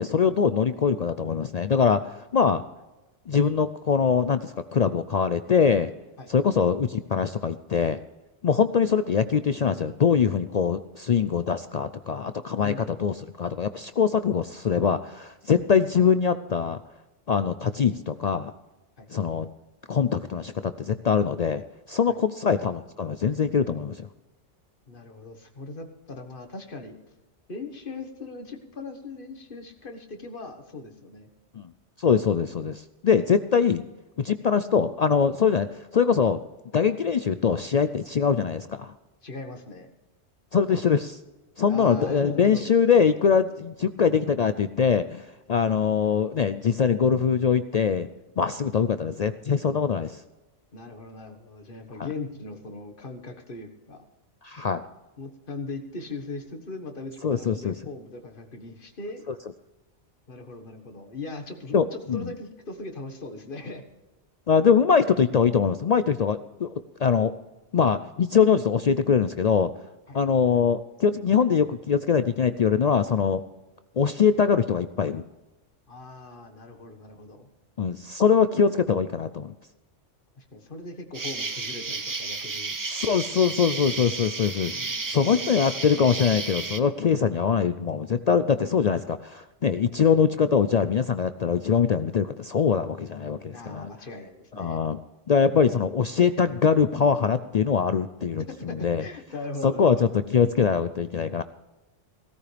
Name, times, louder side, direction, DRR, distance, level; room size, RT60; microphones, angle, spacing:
voice 1, 0.0-2.6 3.3-5.9 6.3-8.0 8.4-16.8 17.3-18.5 19.1-19.5 19.9-21.6 21.9-24.1 31.6-31.7 32.0-33.8 34.2-36.4 36.7-38.9 40.5-41.2 41.6-48.1 48.4-50.1 54.4-54.8 57.2-57.7 61.7-62.3 64.5-66.7 67.0-67.3 67.7-69.7 70.1-73.4 74.0-75.2 77.8-79.5 82.9-84.8 85.1-93.9 94.6-95.0 95.3-99.0 99.6-101.4, left 6 dB, 65° left, 11 dB, 0.4 m, -23 dB
voice 2, 12.6-13.1 19.0-19.1 22.1-22.2 24.9-27.0 27.5-31.3 39.2-39.9 41.7-42.7 50.7-54.1 55.2-59.2 60.3-63.8 70.1-70.2 75.9-77.5 80.4-82.8 84.7-85.5 93.5-94.8 98.5-100.0, left 3 dB, 45° left, 5 dB, 1.7 m, -39 dB
Insect, 81.1-86.8, right 3 dB, 25° right, 0.4 m, -32 dB
17.0 x 14.0 x 3.4 m, 1.1 s
omnidirectional pair, 1.2 m